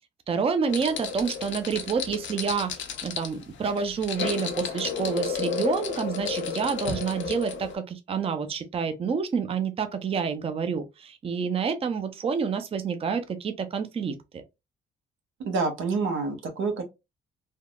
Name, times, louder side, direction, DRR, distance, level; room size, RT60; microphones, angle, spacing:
voice 1, 0.3-2.7 3.0-14.4, right 6 dB, 30° right, 0.5 m, -28 dB
sound 1, 0.7-7.7, left 6 dB, 70° left, 0.7 m, -32 dB
voice 2, 15.4-16.8, right 4 dB, 85° right, 0.8 m, -27 dB
3.4 x 2.0 x 2.2 m
cardioid pair, 90°, 20 cm